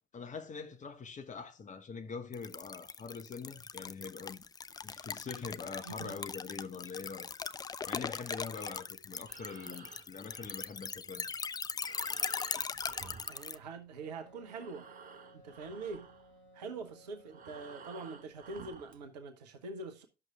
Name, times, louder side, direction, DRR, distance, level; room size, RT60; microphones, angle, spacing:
voice 1, 0.1-4.5 4.8-7.3 7.9-11.3, left 5 dB, 35° left, 1.2 m, -44 dB
sound 1, 2.3-13.6, left 5 dB, 20° left, 0.4 m, -40 dB
Breathing, 9.1-14.1 14.4-19.0, right 6 dB, 40° right, 0.9 m, -54 dB
voice 2, 13.3-14.9 15.3-16.1 16.5-20.0, right 3 dB, 75° right, 0.9 m, -44 dB
Wind instrument woodwind instrument, 14.0-18.6, equal, 60° left, 5.5 m, -60 dB
11.0 x 6.3 x 3.6 m
figure-of-eight pair, 45°, 21 cm